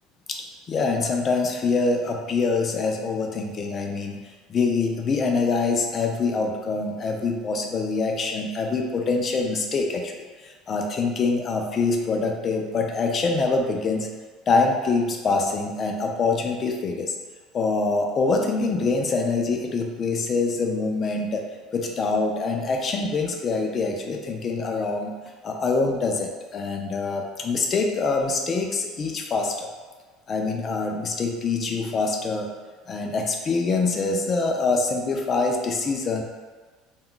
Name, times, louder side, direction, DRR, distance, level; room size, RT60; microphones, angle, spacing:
voice 1, 0.3-4.2 4.5-10.1 10.4-14.1 14.5-17.1 17.5-21.4 21.7-25.1 25.4-29.7 30.3-32.5 32.9-36.2, left 3 dB, 35° left, 2 dB, 0.4 m, -25 dB
2.3 x 2.2 x 3.7 m, 1.4 s
supercardioid pair, 115°, 0 cm